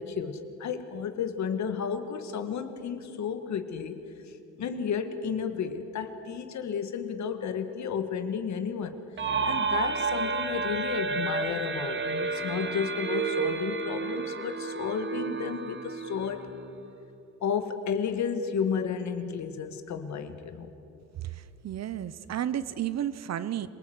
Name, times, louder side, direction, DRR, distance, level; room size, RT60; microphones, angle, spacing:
voice 1, 0.0-4.0 4.6-9.0 9.4-16.5 17.4-20.7, left 7 dB, 65° left, 8 dB, 1.9 m, -32 dB
sound 1, 9.2-16.8, right 5 dB, 40° right, 1.4 m, -31 dB
voice 2, 21.2-23.7, right 11 dB, 60° right, 15 dB, 0.9 m, -32 dB
26.5 x 19.0 x 8.1 m, 2.8 s
cardioid pair, 90°, 30 cm